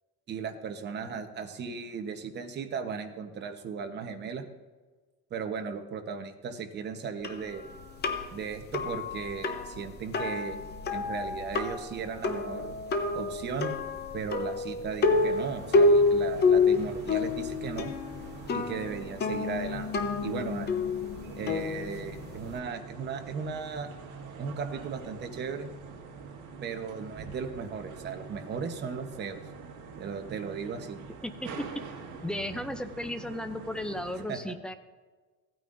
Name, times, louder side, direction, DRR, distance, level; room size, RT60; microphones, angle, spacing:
voice 1, 0.3-4.4 5.3-7.6 8.3-10.6 10.9-12.8 13.1-13.7 14.1-17.9 18.5-19.9 20.2-20.7 21.4-23.9 24.4-25.7 26.6-29.4 30.0-31.0 34.3-34.4, right 5 dB, 35° right, 6 dB, 1.0 m, -36 dB
sound 1, 7.2-22.6, left 3 dB, 30° left, 0.8 m, -28 dB
sound 2, 15.1-34.2, right 5 dB, 70° right, 1.8 m, -45 dB
voice 2, 31.2-31.7 32.2-34.7, left 1 dB, 5° left, 8 dB, 0.4 m, -35 dB
15.5 x 9.1 x 2.6 m, 1.4 s
cardioid pair, 160°, 31 cm